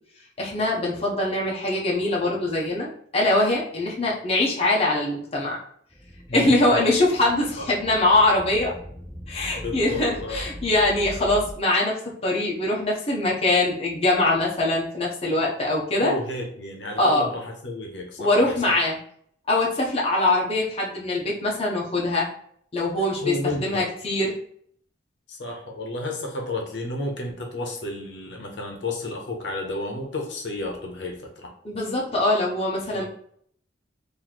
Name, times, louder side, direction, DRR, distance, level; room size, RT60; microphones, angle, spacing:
voice 1, 0.4-5.6 6.3-8.7 9.3-16.1 17.0-17.3 18.2-19.0 19.5-22.3 22.7-24.3 31.6-33.0, left 2 dB, 35° left, -3 dB, 0.8 m, -23 dB
sound 1, 5.9-11.5, equal, 5° left, 0.4 m, -40 dB
voice 2, 6.3-6.9 7.6-7.7 9.5-10.4 16.0-18.7 23.2-23.9 25.3-31.5 32.9-33.0, left 2 dB, 75° left, 1 dB, 0.9 m, -32 dB
3.1 x 2.7 x 4.0 m, 0.62 s
head